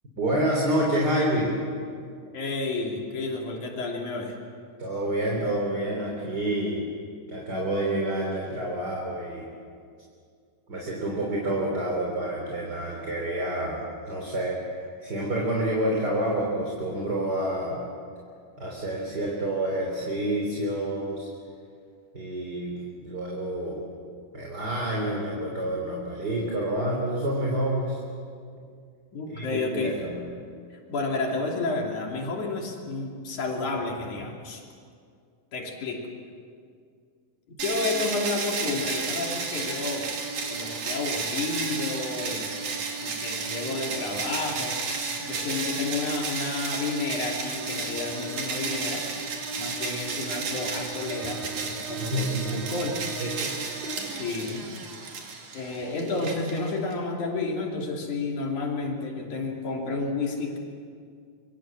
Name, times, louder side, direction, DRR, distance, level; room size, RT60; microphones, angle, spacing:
voice 1, 0.2-1.6 4.8-6.8 7.3-9.5 10.7-13.8 14.1-14.6 15.0-17.8 18.6-21.3 22.1-23.8 24.3-28.0 29.3-30.3 52.0-52.8 53.2-53.6 53.8-54.2, right 1 dB, 30° right, -2 dB, 4.0 m, -28 dB
voice 2, 2.3-4.3 29.1-30.0 30.9-34.6 35.5-36.1 37.6-40.1 40.5-42.5 43.0-49.0 49.6-53.0 54.1-54.6 55.5-60.6, left 3 dB, 65° left, 0 dB, 4.4 m, -31 dB
sound 1, 37.6-56.9, right 4 dB, 65° right, 4.0 m, -32 dB
26.5 x 23.5 x 7.5 m, 2.2 s
omnidirectional pair, 3.7 m